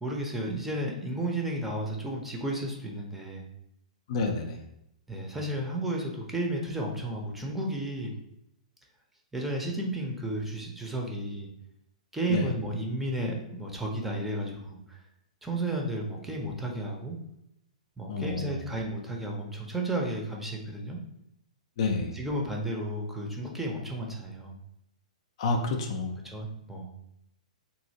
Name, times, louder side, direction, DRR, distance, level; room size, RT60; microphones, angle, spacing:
voice 1, 0.0-3.5 5.1-8.1 9.3-11.5 12.1-15.0 15.4-17.2 18.0-21.0 22.1-24.5 26.2-26.9, right 1 dB, 5° right, -1 dB, 0.6 m, -33 dB
voice 2, 4.1-4.6 12.3-12.5 18.1-18.6 21.8-22.2 25.4-26.2, left 3 dB, 50° left, 4 dB, 0.4 m, -29 dB
3.0 x 2.7 x 2.7 m, 0.79 s
figure-of-eight pair, 115°, 4 cm